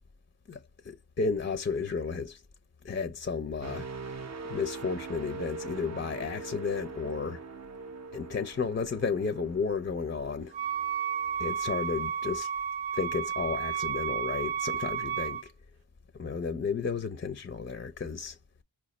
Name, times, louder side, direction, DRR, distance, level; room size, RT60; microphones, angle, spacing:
voice 1, 0.5-2.4 2.8-3.9 4.4-7.4 8.1-10.5 11.4-12.5 12.9-15.5 16.2-18.4, left 5 dB, 25° left, 0.4 m, -33 dB
sound 1, 3.6-11.4 11.9-12.1, right 4 dB, 40° right, 0.6 m, -42 dB
Wind instrument woodwind instrument, 10.5-15.5, right 8 dB, 80° right, 0.6 m, -32 dB
4.5 x 2.1 x 4.0 m
cardioid pair, 40°, 44 cm